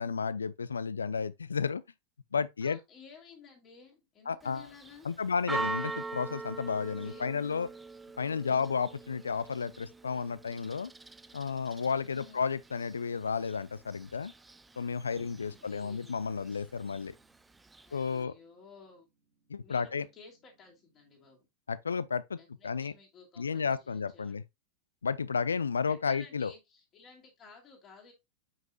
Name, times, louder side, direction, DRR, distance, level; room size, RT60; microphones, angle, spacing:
voice 1, 0.0-1.8 2.3-2.8 4.3-4.7 5.0-7.7 8.2-10.9 11.3-14.3 14.8-17.1 17.9-18.3 19.5-20.1 21.7-22.4 22.6-22.9 23.4-24.4 25.0-26.5, left 5 dB, 75° left, 0.4 m, -32 dB
voice 2, 2.6-5.1 6.9-7.3 8.2-8.6 12.1-12.4 15.4-16.2 17.8-19.1 19.6-21.5 22.4-24.4 25.6-28.1, left 5 dB, 30° left, 2.6 m, -54 dB
Church bell, 4.4-18.2, right 3 dB, 10° right, 0.4 m, -43 dB
sound 1, 15.2-21.4, right 2 dB, 55° right, 1.9 m, -64 dB
7.2 x 5.6 x 2.3 m
figure-of-eight pair, 90°, 0 cm